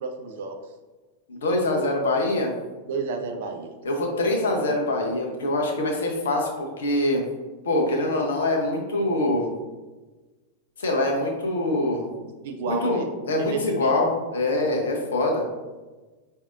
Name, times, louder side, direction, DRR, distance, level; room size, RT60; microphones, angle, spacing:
voice 1, 0.0-0.6 2.9-3.7 12.4-13.1 13.4-14.0, right 4 dB, 55° right, 4 dB, 0.4 m, -31 dB
voice 2, 1.3-2.6 3.8-7.2 7.6-9.5 10.8-12.1 12.7-15.5, left 1 dB, 65° left, 0 dB, 0.7 m, -24 dB
4.7 x 2.6 x 2.4 m, 1.2 s
figure-of-eight pair, 90°, 0 cm